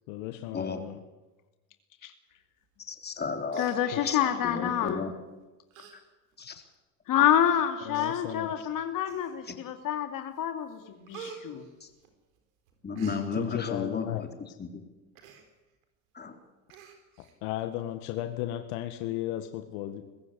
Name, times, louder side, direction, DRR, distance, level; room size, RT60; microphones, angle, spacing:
voice 1, 0.1-1.0 3.9-4.0 7.8-8.7 13.4-14.3 17.4-20.0, left 13 dB, 75° left, 8 dB, 1.8 m, -35 dB
voice 2, 2.9-3.6 4.0-5.1 6.4-6.6 9.5-9.6 11.8-11.9 12.8-14.0 14.6-14.8 16.1-16.3, left 5 dB, 25° left, 5 dB, 3.8 m, -33 dB
Human voice, 3.0-3.2 3.5-4.4 5.1-5.3 5.7-5.9 6.3-6.4 7.2-7.3 7.9-8.1 9.0-9.6 10.0-10.4 10.7-12.4 12.7-13.2 15.1-15.4 15.8-15.9 16.2-16.3 16.7-17.3 17.7-17.8, right 7 dB, 85° right, 4.3 m, -48 dB
voice 3, 3.6-5.1 7.1-11.7, left 10 dB, 55° left, 7 dB, 2.7 m, -27 dB
22.5 x 14.5 x 9.8 m, 1.1 s
supercardioid pair, 90°, 40 cm